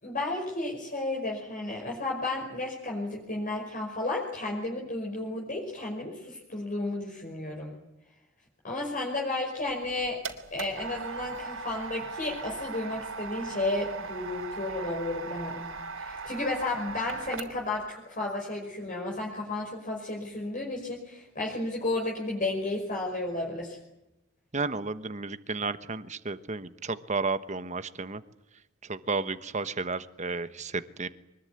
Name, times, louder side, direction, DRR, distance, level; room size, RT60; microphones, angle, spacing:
voice 1, 0.0-7.7 8.6-10.2 10.5-15.7 16.0-23.8, left 2 dB, 40° left, -1 dB, 5.5 m, -33 dB
sound 1, 9.7-17.8, right 4 dB, 70° right, 3.5 m, -39 dB
voice 2, 24.5-28.2 28.8-31.1, right 3 dB, 35° right, 12 dB, 1.2 m, -32 dB
24.0 x 21.5 x 9.6 m, 0.91 s
head